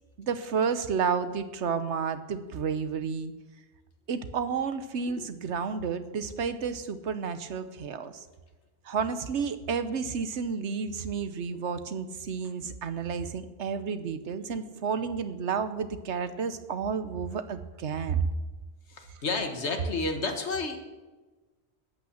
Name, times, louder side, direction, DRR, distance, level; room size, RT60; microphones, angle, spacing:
voice 1, 0.2-3.3 4.1-8.2 8.8-18.3, right 6 dB, 80° right, 11 dB, 1.2 m, -31 dB
voice 2, 18.9-20.8, left 3 dB, 75° left, 5 dB, 1.8 m, -31 dB
12.0 x 8.8 x 7.2 m, 1.2 s
omnidirectional pair, 1.2 m